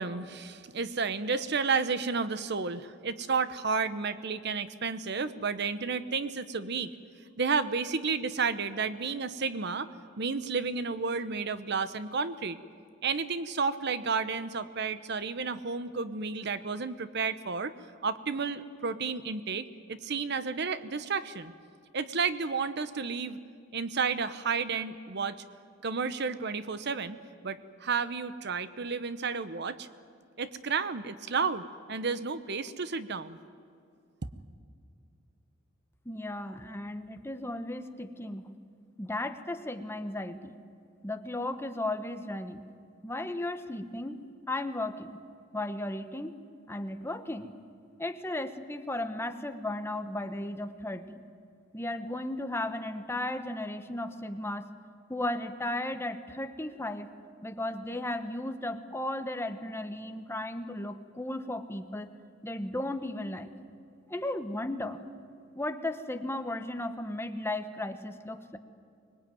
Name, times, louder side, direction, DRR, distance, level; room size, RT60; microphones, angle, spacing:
voice 1, 0.0-6.9 7.4-9.9 10.2-12.6 13.0-17.7 18.0-21.5 21.9-23.4 23.7-25.4 25.8-29.9 30.4-33.4, right 5 dB, 60° right, 13 dB, 0.9 m, -32 dB
voice 2, 36.0-38.5 39.0-40.6 41.0-42.6 43.0-44.2 44.5-45.2 45.5-46.4 46.7-47.6 48.0-51.2 51.7-54.7 55.1-57.1 57.4-62.1 62.4-63.5 64.1-65.0 65.5-68.6, left 1 dB, 15° left, 8 dB, 1.1 m, -35 dB
24.5 x 21.0 x 9.2 m, 2.4 s
head